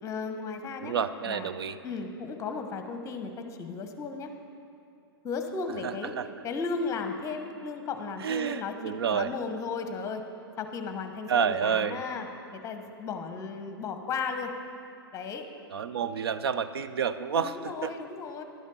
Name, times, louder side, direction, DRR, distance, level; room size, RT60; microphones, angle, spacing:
voice 1, 0.0-0.9 1.3-1.5 1.8-4.3 5.2-6.1 6.4-10.2 10.6-12.3 12.5-14.5 15.1-15.4 17.3-18.4, left 4 dB, 25° left, 6 dB, 1.0 m, -35 dB
voice 2, 0.8-1.8 5.8-6.3 8.2-9.3 11.3-12.0 15.7-17.9, right 7 dB, 70° right, 12 dB, 0.5 m, -29 dB
11.5 x 8.7 x 5.4 m, 2.7 s
hypercardioid pair, 110°, 13 cm